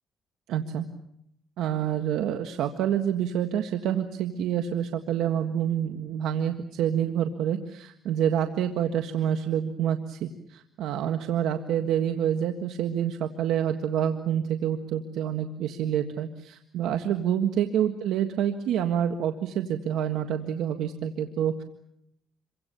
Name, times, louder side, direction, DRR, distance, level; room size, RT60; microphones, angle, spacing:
voice 1, 0.5-0.8 1.6-21.6, right 9 dB, 90° right, 6 dB, 1.6 m, -27 dB
28.5 x 24.5 x 7.0 m, 0.75 s
cardioid pair, 90°, 0 cm